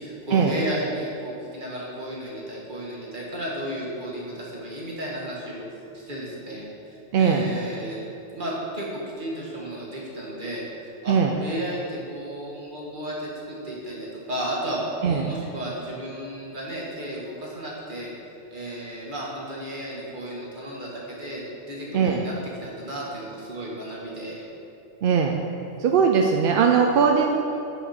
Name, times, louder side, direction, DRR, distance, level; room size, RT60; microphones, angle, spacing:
voice 1, 0.0-5.6 5.9-8.0 8.3-8.9 9.2-11.2 11.4-18.1 18.5-22.3 22.6-24.4, right 1 dB, 45° right, -4 dB, 1.7 m, -33 dB
voice 2, 7.1-7.4 11.1-11.4 15.0-15.3 21.9-22.3 25.0-25.4 25.8-27.4, right 6 dB, 60° right, 2 dB, 0.6 m, -20 dB
11.5 x 5.0 x 4.3 m, 2.9 s
omnidirectional pair, 1.2 m